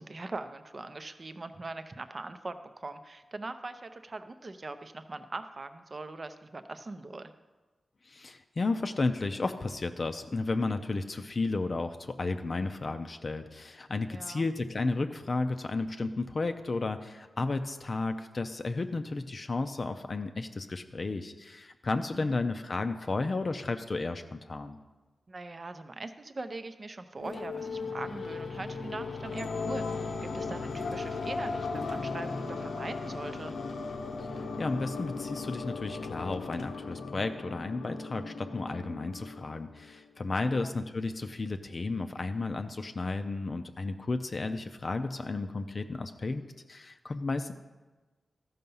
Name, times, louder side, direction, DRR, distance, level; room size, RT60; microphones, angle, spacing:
voice 1, 0.0-7.3 14.1-14.5 22.1-22.4 25.3-33.5 40.5-40.7, right 2 dB, 35° right, 9 dB, 0.6 m, -41 dB
voice 2, 8.0-24.8 34.3-46.4 46.7-47.5, left 3 dB, 40° left, 7 dB, 0.5 m, -33 dB
sound 1, 27.2-40.1, left 4 dB, 85° left, 0.8 m, -37 dB
13.5 x 5.6 x 5.5 m, 1.2 s
wide cardioid pair, 105°, 0 cm